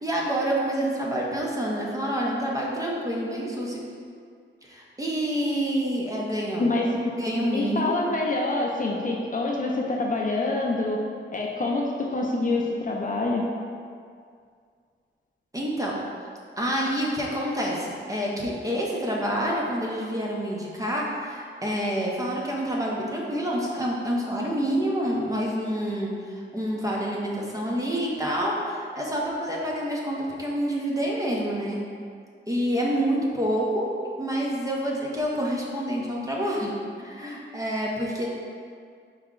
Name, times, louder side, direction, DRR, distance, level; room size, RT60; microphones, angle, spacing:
voice 1, 0.0-3.8 4.6-7.9 15.5-16.0 16.6-31.8 32.5-33.9 34.2-36.7 37.0-38.3, equal, 15° right, -3 dB, 0.5 m, -27 dB
voice 2, 7.5-11.0 11.3-11.8 12.1-13.4, left 2 dB, 40° left, -1 dB, 0.4 m, -26 dB
4.6 x 2.1 x 3.7 m, 2.2 s
wide cardioid pair, 135°, 20 cm